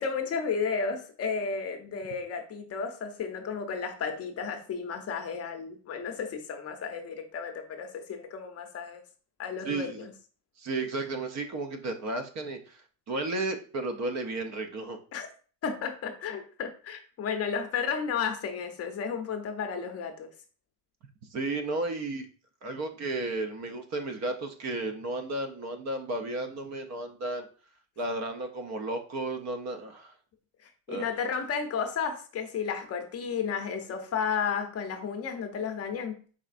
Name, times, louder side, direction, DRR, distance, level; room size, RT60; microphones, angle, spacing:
voice 1, 0.0-9.0 9.4-10.1 15.1-15.3 15.6-20.3 30.9-36.2, left 6 dB, 35° left, 5 dB, 0.7 m, -33 dB
voice 2, 9.6-10.1 10.6-12.8 13.1-15.0 21.3-22.3 22.6-27.5 28.0-30.1 30.9-31.1, right 2 dB, 40° right, 6 dB, 0.6 m, -33 dB
4.9 x 3.2 x 2.5 m, 0.40 s
supercardioid pair, 120°, 43 cm